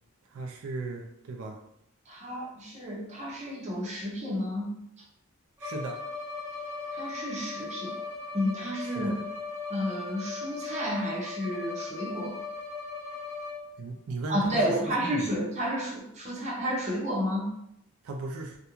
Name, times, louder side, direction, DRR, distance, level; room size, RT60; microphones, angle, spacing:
voice 1, 0.3-1.6 5.6-6.0 8.9-9.1 13.8-15.3 18.0-18.6, right 3 dB, 90° right, 2 dB, 0.4 m, -36 dB
voice 2, 2.1-4.8 6.9-8.1 8.3-9.2 9.7-12.4 14.3-17.5, equal, 35° right, -4 dB, 0.7 m, -31 dB
Bowed string instrument, 5.6-13.9, left 4 dB, 10° right, 1.0 m, -38 dB
2.4 x 2.2 x 2.9 m, 0.78 s
head